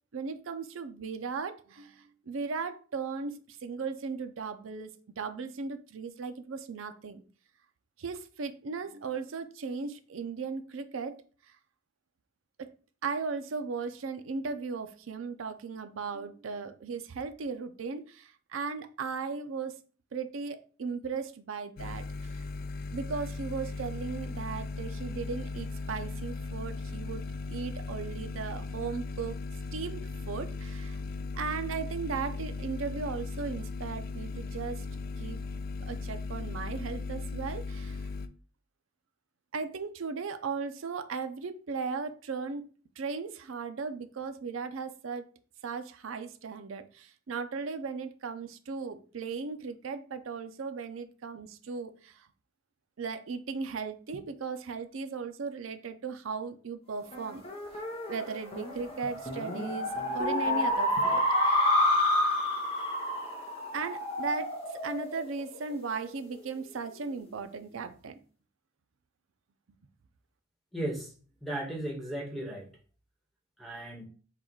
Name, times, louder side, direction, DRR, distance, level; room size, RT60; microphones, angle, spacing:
voice 1, 0.1-7.2 8.0-11.6 12.6-12.7 13.0-19.8 20.1-22.4 22.9-29.4 29.7-31.0 31.3-34.9 35.2-35.4 35.8-38.1 39.5-42.7 43.0-45.3 45.6-52.3 53.0-57.4 58.1-61.7 63.7-68.2, right 5 dB, 80° right, 0.5 m, -37 dB
sound 1, 21.8-38.3, left 3 dB, 45° left, 0.3 m, -37 dB
sound 2, 57.1-66.0, left 1 dB, 30° left, 0.7 m, -29 dB
voice 2, 70.7-71.1 71.4-72.7 73.6-74.1, right 1 dB, ahead, 1.2 m, -35 dB
3.9 x 2.3 x 4.5 m
head